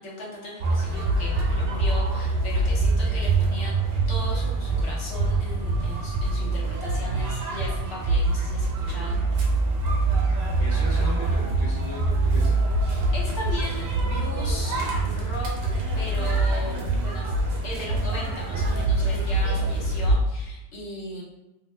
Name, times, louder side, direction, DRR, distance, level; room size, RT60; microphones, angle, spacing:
voice 1, 0.0-3.7 4.1-9.2 12.9-21.2, left 1 dB, 75° left, -4 dB, 1.1 m, -37 dB
sound 1, 0.6-20.1, right 2 dB, 65° right, 0.8 m, -24 dB
voice 2, 10.6-12.6 16.5-16.9, equal, 25° right, -7 dB, 0.6 m, -37 dB
2.8 x 2.0 x 3.2 m, 0.96 s
omnidirectional pair, 1.1 m